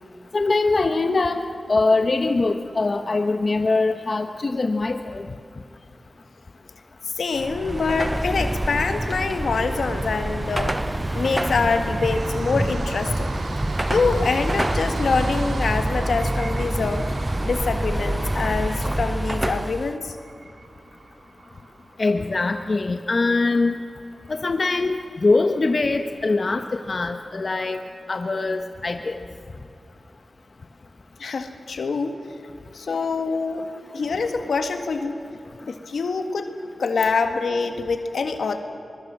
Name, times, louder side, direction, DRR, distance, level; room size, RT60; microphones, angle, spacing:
voice 1, 0.3-1.4 1.7-5.3 22.0-23.8 24.3-27.8 28.1-29.2, left 3 dB, 55° left, 7 dB, 1.1 m, -22 dB
voice 2, 7.1-13.3 13.9-17.1 17.4-20.1 31.2-32.1 32.7-33.7 33.9-35.2 35.7-36.5 36.8-38.6, left 4 dB, 85° left, 7 dB, 1.7 m, -25 dB
Car passing by / Traffic noise roadway noise / Engine, 7.3-20.0, right 1 dB, 20° right, 0.4 m, -26 dB
sound 1, 9.1-19.0, right 2 dB, 60° right, 3.9 m, -37 dB
sound 2, 9.7-23.8 24.2-24.3 24.6-24.7, right 3 dB, 80° right, 2.0 m, -40 dB
23.0 x 21.5 x 7.6 m, 2.6 s
cardioid pair, 50°, 0 cm